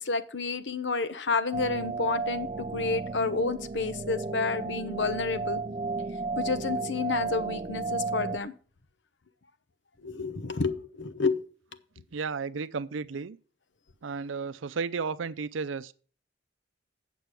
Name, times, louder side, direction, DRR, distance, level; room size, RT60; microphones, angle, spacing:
voice 1, 0.0-5.6 6.4-8.5 10.0-11.4, left 4 dB, 70° left, 0.9 m, -30 dB
sound 1, 1.5-8.4, right 4 dB, 30° right, 0.5 m, -33 dB
voice 2, 12.1-13.4 14.0-15.9, right 5 dB, 90° right, 0.5 m, -33 dB
8.3 x 6.7 x 6.1 m
head